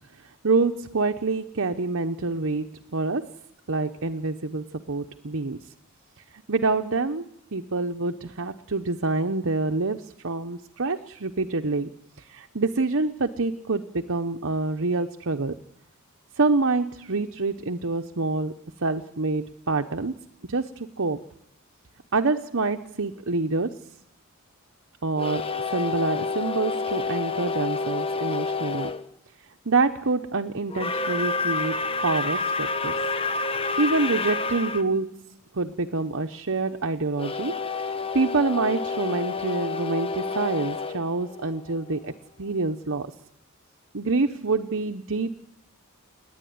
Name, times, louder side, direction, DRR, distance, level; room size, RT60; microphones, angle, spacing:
voice 1, 0.4-3.3 3.7-5.6 6.5-15.5 16.4-18.5 18.8-20.1 20.5-21.2 22.1-23.8 25.0-28.9 29.7-31.8 32.0-33.0 33.8-35.2 35.5-37.5 37.8-42.1 42.4-43.1 43.9-45.3, right 3 dB, 60° right, 6 dB, 0.9 m, -26 dB
sound 1, 25.1-29.0 30.7-34.8 37.2-42.0, left 4 dB, 25° left, 1.1 m, -29 dB
29.5 x 10.5 x 9.5 m, 0.79 s
head